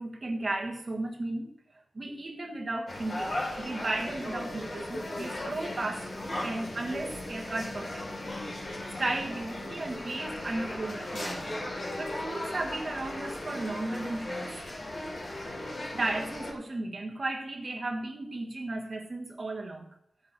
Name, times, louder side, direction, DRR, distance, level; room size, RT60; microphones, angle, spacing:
voice 1, 0.0-1.5 1.9-8.0 8.6-8.7 9.0-11.6 12.0-14.5 15.9-19.9, right 2 dB, 30° right, 1.5 m, -35 dB
sound 1, 2.9-16.5, left 1 dB, 50° left, 3.5 m, -37 dB
16.0 x 6.9 x 4.2 m
wide cardioid pair, 135°, 0 cm